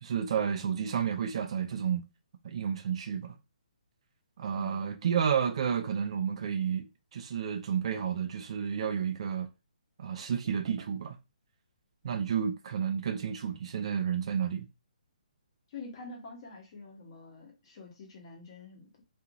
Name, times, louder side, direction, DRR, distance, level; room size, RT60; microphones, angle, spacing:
voice 1, 0.0-2.0 2.4-3.3 4.4-6.9 7.1-9.5 10.0-11.2 12.0-14.7, right 7 dB, 45° right, 0.4 m, -31 dB
voice 2, 0.6-1.0 4.5-4.9 15.7-19.0, left 3 dB, 35° left, 1.0 m, -47 dB
2.5 x 2.4 x 2.9 m
hypercardioid pair, 165°, 5 cm